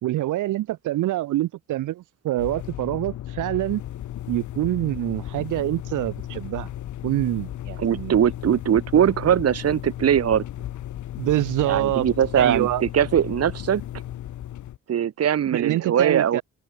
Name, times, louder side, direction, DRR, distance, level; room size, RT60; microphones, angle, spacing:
voice 1, 0.0-3.8 4.3-6.7 7.0-8.2 11.2-12.1 12.4-12.8 15.5-16.4, right 15 dB, 85° right, 2.4 m, -25 dB
sound 1, 2.4-14.8, left 12 dB, 75° left, 3.3 m, -35 dB
voice 2, 7.8-10.4 11.7-13.8 14.9-16.4, right 9 dB, 55° right, 1.8 m, -21 dB
cardioid pair, 90°, 30 cm